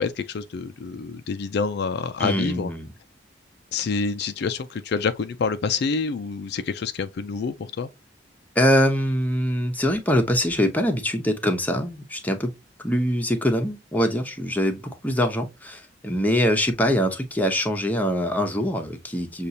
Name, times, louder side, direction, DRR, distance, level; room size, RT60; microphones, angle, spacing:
voice 1, 0.0-2.7 3.7-7.9, left 5 dB, 60° left, 0.4 m, -27 dB
voice 2, 2.2-2.9 8.5-12.5 12.8-19.5, equal, 10° left, 0.7 m, -23 dB
6.6 x 2.4 x 2.7 m
head